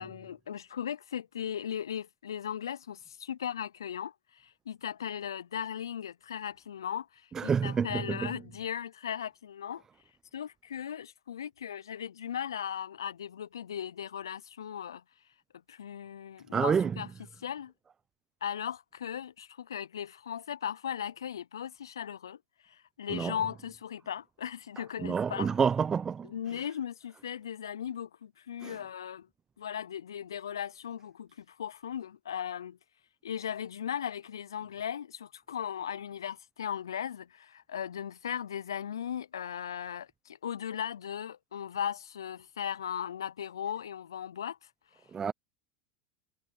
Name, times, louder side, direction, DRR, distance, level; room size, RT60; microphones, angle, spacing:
voice 1, 0.0-9.8 10.3-15.0 15.7-17.1 17.4-17.7 18.4-22.4 22.6-25.6 26.3-29.3 29.6-32.8 33.2-44.7, left 9 dB, 80° left, 0.6 m, -37 dB
voice 2, 7.3-8.3 16.5-17.0 23.1-23.3 25.0-26.3 28.6-28.8 45.1-45.3, right 6 dB, 25° right, 1.1 m, -28 dB
hypercardioid pair, 85°, 2 cm